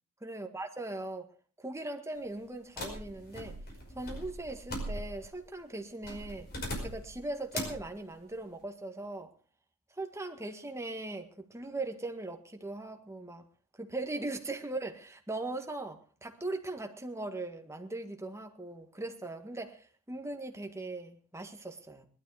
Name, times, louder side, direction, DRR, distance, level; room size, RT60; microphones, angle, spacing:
voice 1, 0.2-1.3 1.6-3.6 3.9-6.5 6.8-9.3 10.0-13.4 13.8-22.1, right 2 dB, 15° right, 1.7 m, -39 dB
sound 1, 2.8-5.3 6.0-7.2 7.5-7.9, equal, 45° left, 5.3 m, -39 dB
19.5 x 12.5 x 4.9 m
head